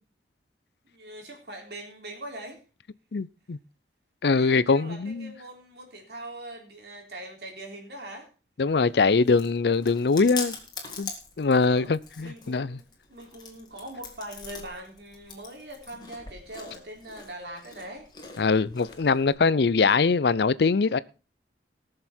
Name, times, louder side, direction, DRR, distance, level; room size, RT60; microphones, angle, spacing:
voice 1, 0.8-2.6 4.3-8.3 11.6-11.9 12.2-12.8 13.1-18.1, right 1 dB, 70° right, 3.6 m, -42 dB
voice 2, 3.1-3.6 4.2-5.3 8.6-10.5 11.0-11.1 11.4-12.8 18.4-21.0, left 4 dB, 70° left, 0.5 m, -22 dB
Chewing mastication, 8.7-19.3, left 5 dB, 25° left, 2.0 m, -43 dB
19.0 x 6.8 x 4.3 m
head